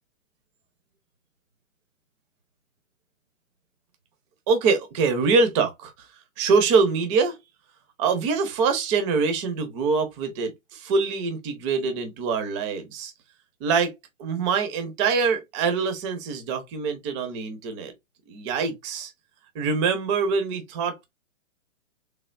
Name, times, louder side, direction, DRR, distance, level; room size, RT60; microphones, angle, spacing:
voice 1, 4.5-6.1 6.4-7.4 8.0-13.1 13.6-13.9 14.2-17.9 18.3-19.1 19.5-21.1, right 5 dB, 25° right, 0.7 m, -24 dB
3.5 x 3.4 x 2.4 m
hypercardioid pair, 140°, 39 cm